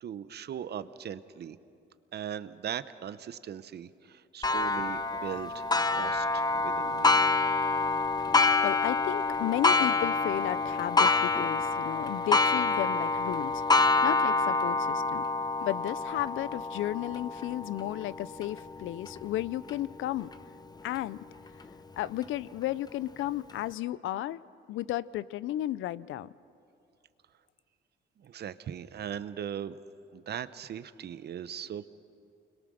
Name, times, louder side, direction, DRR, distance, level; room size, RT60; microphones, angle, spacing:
voice 1, 0.0-1.6 2.1-7.2 28.2-29.8 30.1-31.9, right 9 dB, 55° right, 13 dB, 0.9 m, -39 dB
Clock, 4.4-19.7 20.3-20.4 21.0-21.1 22.0-22.1, left 3 dB, 20° left, 0.8 m, -27 dB
voice 2, 8.6-13.6 14.0-15.2 15.6-20.3 20.8-21.2 22.0-24.4 24.7-26.3, left 14 dB, 80° left, 19 dB, 0.5 m, -33 dB
29.5 x 22.0 x 6.4 m, 2.5 s
cardioid pair, 90°, 20 cm